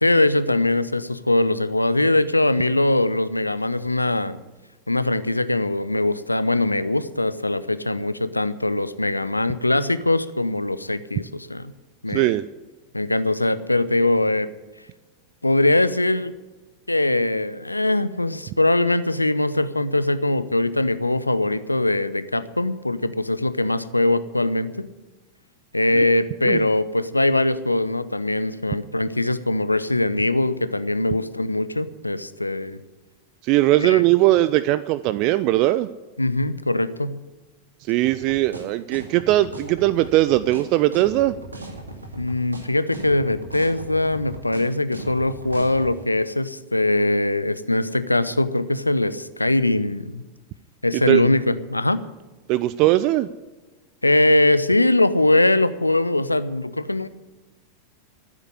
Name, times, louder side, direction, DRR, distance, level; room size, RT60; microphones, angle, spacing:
voice 1, 0.0-4.4 4.9-11.7 12.0-12.3 12.9-14.5 15.4-16.3 16.9-24.9 25.7-32.8 33.8-34.0 36.2-37.2 42.2-50.2 50.8-52.0 54.0-57.1, left 2 dB, 85° left, 14 dB, 0.7 m, -21 dB
voice 2, 12.1-12.4 26.4-26.6 33.4-35.9 37.9-41.3 50.9-51.2 52.5-53.3, right 16 dB, 40° right, 16 dB, 0.5 m, -19 dB
sound 1, 38.0-45.9, right 2 dB, 80° right, 2.2 m, -37 dB
14.5 x 8.1 x 9.9 m, 1.2 s
figure-of-eight pair, 90°, 0 cm